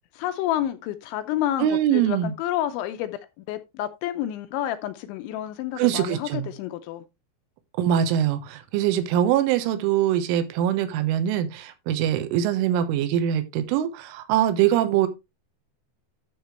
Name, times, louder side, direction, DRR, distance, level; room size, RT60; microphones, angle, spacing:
voice 1, 0.1-3.2 3.5-7.0, left 12 dB, 85° left, 2.7 m, -29 dB
voice 2, 1.6-2.3 5.8-6.5 7.8-15.1, right 10 dB, 80° right, 3.5 m, -23 dB
11.5 x 6.6 x 3.2 m
omnidirectional pair, 5.9 m